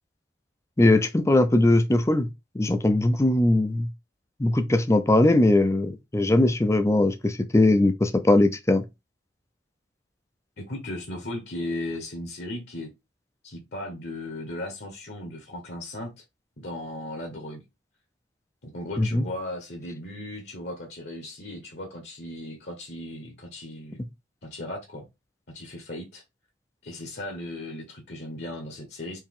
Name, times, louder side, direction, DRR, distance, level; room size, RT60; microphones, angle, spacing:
voice 1, 0.8-2.3 2.5-3.9 4.4-8.8 19.0-19.2, left 2 dB, 15° left, 0.4 m, -20 dB
voice 2, 10.6-12.9 13.4-16.1 16.6-17.6 18.6-24.0 24.4-25.0 25.5-26.2 26.8-29.2, left 1 dB, 60° left, 1.0 m, -36 dB
4.5 x 2.9 x 3.6 m
head